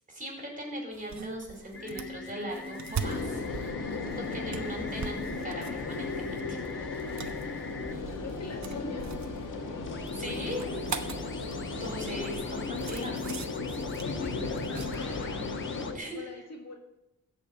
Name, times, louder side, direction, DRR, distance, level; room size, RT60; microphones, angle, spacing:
voice 1, 0.1-3.4 3.8-6.6 9.9-10.9 11.7-13.3 15.9-16.5, equal, 25° right, 0 dB, 4.6 m, -39 dB
sound 1, 0.9-15.3, right 6 dB, 65° right, 1.1 m, -42 dB
sound 2, 1.7-7.9 9.5-15.9, left 4 dB, 40° left, 1.0 m, -44 dB
sound 3, 3.0-15.9, left 3 dB, 85° left, 2.1 m, -35 dB
voice 2, 8.1-9.1 14.0-15.4 15.7-16.7, left 3 dB, 55° left, 1 dB, 2.3 m, -43 dB
14.0 x 5.4 x 8.8 m, 0.92 s
cardioid pair, 80°, 31 cm